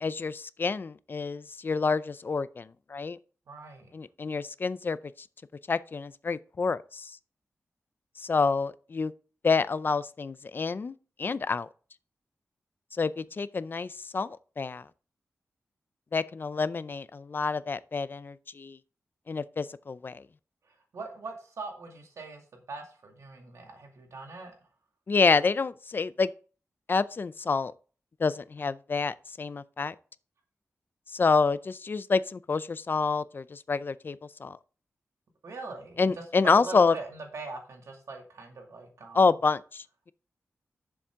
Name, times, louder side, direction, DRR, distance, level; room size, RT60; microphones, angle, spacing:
voice 1, 0.0-3.2 3.9-5.0 5.7-7.2 8.2-9.1 9.4-11.7 12.9-14.8 16.1-18.8 19.3-20.2 25.1-26.3 26.9-27.7 28.2-29.9 31.1-34.6 36.0-36.9 39.1-40.1, left 4 dB, 45° left, 0.5 m, -28 dB
voice 2, 3.5-3.9 20.7-24.5 35.4-36.1 36.5-39.2, right 3 dB, 85° right, 2.2 m, -42 dB
10.0 x 7.1 x 3.6 m
wide cardioid pair, 130°, 5 cm